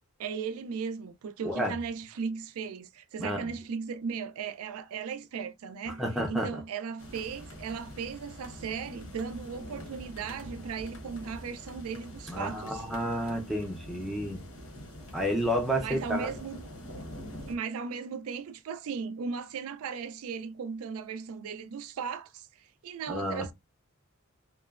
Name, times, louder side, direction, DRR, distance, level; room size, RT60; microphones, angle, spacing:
voice 1, 0.2-12.8 15.8-16.7 17.5-23.5, right 6 dB, 80° right, 0.4 m, -37 dB
voice 2, 1.4-1.8 3.2-3.5 6.0-6.5 12.3-14.4 15.1-16.3 23.1-23.4, equal, ahead, 0.5 m, -30 dB
sound 1, 7.0-17.6, left 1 dB, 75° left, 0.9 m, -45 dB
2.9 x 2.0 x 2.3 m
head